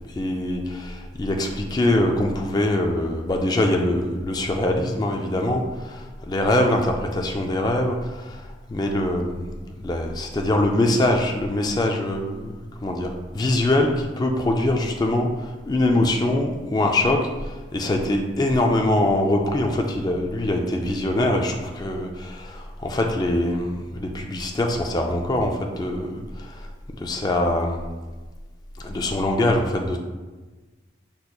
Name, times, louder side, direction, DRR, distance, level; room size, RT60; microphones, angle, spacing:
voice 1, 0.1-26.7 27.0-27.8 28.8-30.0, left 1 dB, 20° left, 2 dB, 0.3 m, -23 dB
5.1 x 4.3 x 2.3 m, 1.3 s
head